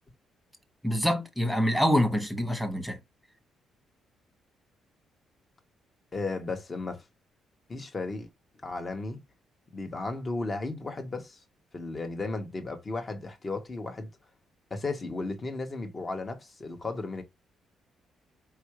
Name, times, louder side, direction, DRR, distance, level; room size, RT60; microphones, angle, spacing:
voice 1, 0.8-3.0, equal, 5° left, 1.5 m, -26 dB
voice 2, 6.1-7.0 7.7-8.3 8.6-9.2 9.7-11.4 11.7-14.1 14.7-17.2, left 3 dB, 30° left, 1.4 m, -34 dB
4.8 x 3.1 x 3.2 m
cardioid pair, 90°, 0 cm